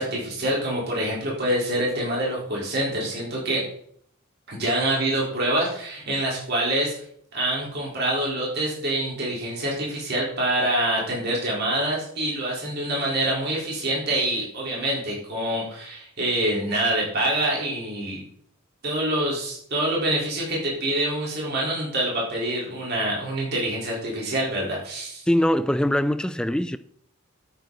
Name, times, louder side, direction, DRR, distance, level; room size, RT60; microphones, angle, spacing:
voice 1, 0.0-3.7 4.5-6.9 7.3-18.2 18.8-25.2, right 1 dB, 50° right, 3.9 m, -26 dB
voice 2, 25.3-26.8, left 1 dB, 5° left, 0.3 m, -22 dB
9.2 x 8.8 x 4.0 m
head